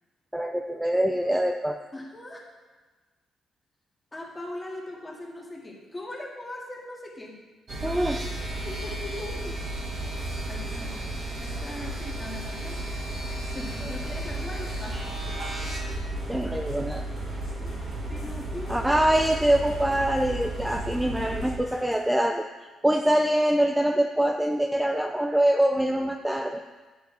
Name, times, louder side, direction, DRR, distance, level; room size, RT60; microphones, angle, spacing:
voice 1, 0.3-1.8 7.8-8.2 16.3-17.1 18.7-26.6, right 1 dB, 5° right, 5 dB, 0.5 m, -24 dB
voice 2, 1.9-2.5 4.1-7.4 8.6-9.6 10.5-11.0 11.4-12.8 13.4-15.0 17.6-17.7 18.1-18.9, left 1 dB, 20° left, -2 dB, 2.2 m, -39 dB
sound 1, 7.7-21.6, right 1 dB, 40° right, 1.7 m, -33 dB
sound 2, 10.2-22.2, left 1 dB, 60° left, 2.2 m, -50 dB
10.5 x 7.7 x 3.5 m, 1.3 s
cardioid pair, 90°, 0 cm